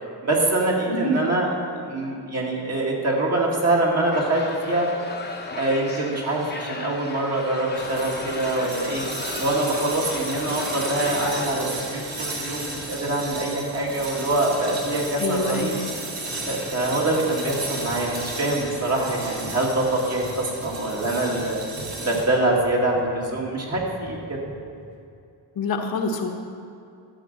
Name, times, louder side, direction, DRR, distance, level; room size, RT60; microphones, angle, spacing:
voice 1, 0.2-1.5 1.8-4.9 5.6-9.0 9.4-15.7 16.5-24.4, right 2 dB, 35° right, -2 dB, 2.2 m, -24 dB
sound 1, 4.1-11.5, left 3 dB, 25° left, 1.1 m, -36 dB
sound 2, 7.8-22.2, right 2 dB, 85° right, 2.9 m, -33 dB
voice 2, 15.2-15.8 25.5-26.3, left 2 dB, 55° left, 2 dB, 1.3 m, -26 dB
sound 3, 17.5-18.7 19.0-20.3 20.6-24.9, equal, 55° right, 2.9 m, -42 dB
13.0 x 7.8 x 6.7 m, 2.5 s
wide cardioid pair, 155°, 42 cm